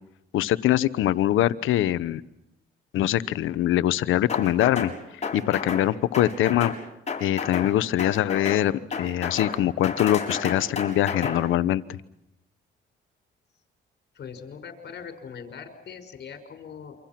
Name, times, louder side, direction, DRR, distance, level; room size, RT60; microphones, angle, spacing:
voice 1, 0.3-2.2 2.9-4.9 5.3-6.7 7.2-12.0, left 13 dB, 85° left, 16 dB, 1.0 m, -23 dB
sound 1, 4.3-4.9 5.2-5.9 6.1-6.8 7.1-7.7 8.0-8.6 8.9-9.6 9.8-11.4, left 5 dB, 35° left, 7.3 m, -31 dB
voice 2, 14.1-17.0, left 6 dB, 55° left, 6 dB, 5.6 m, -41 dB
28.5 x 26.0 x 6.0 m, 0.81 s
cardioid pair, 90°, 20 cm